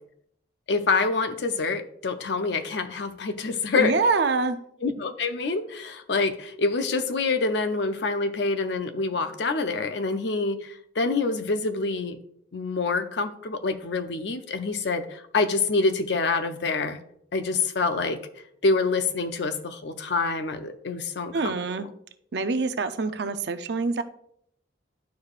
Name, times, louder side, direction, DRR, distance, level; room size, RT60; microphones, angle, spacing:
voice 1, 0.7-3.9 4.8-12.2 12.5-17.0 17.3-18.2 18.6-21.9, left 3 dB, 65° left, 9 dB, 0.6 m, -26 dB
voice 2, 3.8-4.6 21.3-21.9 22.3-24.0, right 4 dB, 60° right, 10 dB, 0.5 m, -25 dB
11.5 x 4.8 x 2.4 m, 0.70 s
head